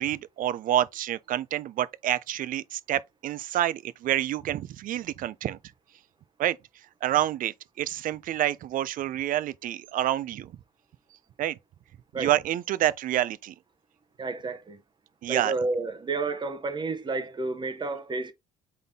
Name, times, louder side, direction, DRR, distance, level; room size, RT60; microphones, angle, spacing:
voice 1, 0.0-5.6 6.4-6.6 7.0-10.5 11.4-11.6 12.2-13.5 15.2-15.5, right 12 dB, 55° right, 0.4 m, -28 dB
voice 2, 14.2-14.8 15.3-18.3, right 3 dB, 25° right, 0.7 m, -31 dB
4.0 x 3.6 x 3.5 m
cardioid pair, 110°, 17 cm